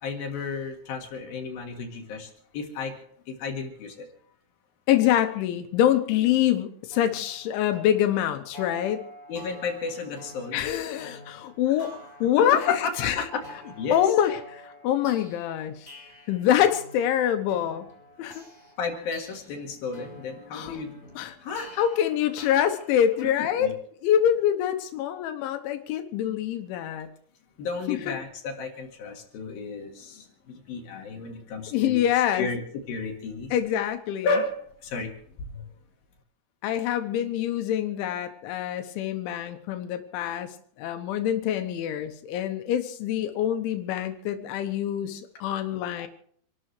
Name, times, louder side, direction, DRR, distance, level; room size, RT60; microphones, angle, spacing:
voice 1, 0.0-3.0 3.3-4.1 9.3-10.7 12.4-14.0 18.8-21.1 21.4-21.7 23.4-23.7 27.6-32.1 32.3-32.6 32.9-33.6 34.2-35.1 35.5-35.7 46.0-46.1, left 4 dB, 60° left, 2 dB, 3.2 m, -33 dB
voice 2, 4.9-9.0 10.5-13.2 13.9-15.9 16.3-17.9 18.2-18.4 20.5-20.8 21.2-21.4 21.8-23.7 24.0-27.1 27.9-28.1 31.7-32.5 33.5-34.3 36.6-40.5 40.8-46.1, left 10 dB, 85° left, 8 dB, 3.4 m, -25 dB
sound 1, 6.9-23.2, left 1 dB, 10° left, 2.5 m, -48 dB
28.0 x 12.5 x 3.2 m, 0.62 s
omnidirectional pair, 5.3 m